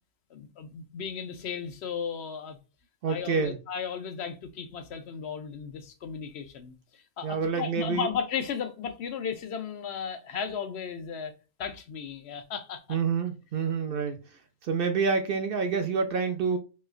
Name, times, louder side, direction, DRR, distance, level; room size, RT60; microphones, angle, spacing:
voice 1, 0.3-2.6 3.1-11.3 11.6-13.0 13.9-14.0, left 7 dB, 65° left, 0.8 m, -35 dB
voice 2, 3.0-3.6 7.2-8.1 12.9-14.2 14.6-16.6, right 5 dB, 60° right, 0.7 m, -27 dB
4.2 x 2.3 x 2.3 m
omnidirectional pair, 1.2 m